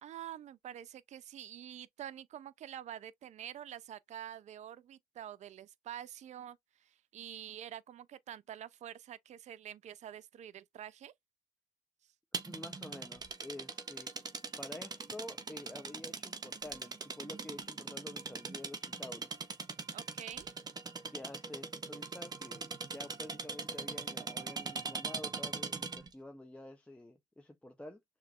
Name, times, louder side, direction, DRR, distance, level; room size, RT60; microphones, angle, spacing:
voice 1, 0.0-11.1 19.9-20.5, right 10 dB, 45° right, 0.5 m, -47 dB
sound 1, 12.3-26.1, right 4 dB, 25° right, 0.8 m, -41 dB
voice 2, 12.4-14.1 14.6-19.4 21.1-28.0, left 1 dB, 5° left, 0.6 m, -49 dB
6.4 x 3.0 x 2.4 m
cardioid pair, 110°, 17 cm